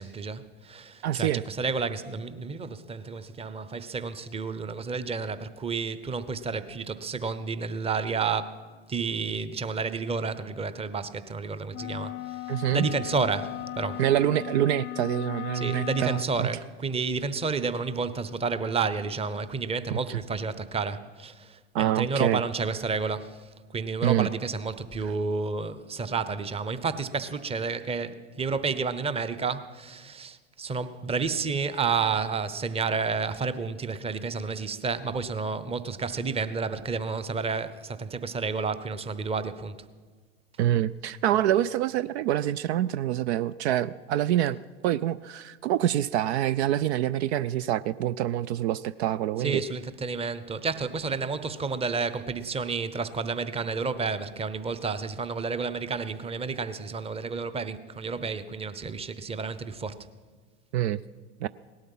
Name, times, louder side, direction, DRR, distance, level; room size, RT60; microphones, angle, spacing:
voice 1, 0.0-14.0 15.5-39.9 49.4-60.1, right 4 dB, 15° right, 0.8 m, -31 dB
voice 2, 1.0-1.4 12.5-12.9 14.0-16.5 19.9-20.2 21.7-22.4 24.0-24.3 40.6-49.6 60.7-61.0 61.4-61.5, right 12 dB, 65° right, 0.5 m, -26 dB
sound 1, 11.7-16.3, left 15 dB, 35° left, 0.5 m, -37 dB
18.0 x 12.5 x 5.6 m
hypercardioid pair, 95°, 35 cm